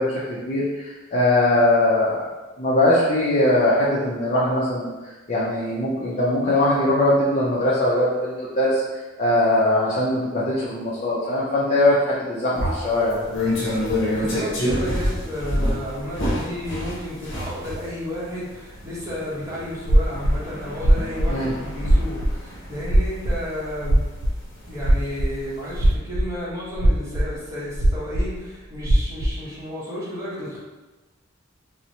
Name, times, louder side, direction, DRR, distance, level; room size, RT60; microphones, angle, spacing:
voice 1, 0.0-2.3 2.6-13.2 21.3-21.5, left 1 dB, 35° left, -7 dB, 0.5 m, -21 dB
sound 1, 12.5-25.2 25.6-25.8, left 1 dB, 65° left, 0.7 m, -28 dB
voice 2, 14.1-24.0 24.6-30.6, left 1 dB, 15° right, -9 dB, 0.8 m, -32 dB
sound 2, 19.9-20.4 20.7-21.4 21.8-22.4 22.8-23.4 23.8-24.4 24.8-25.4 25.7-26.3 26.7-27.4 27.7-28.3 28.8-29.3, right 1 dB, 65° right, 0.4 m, -18 dB
2.8 x 2.0 x 2.7 m, 1.2 s
head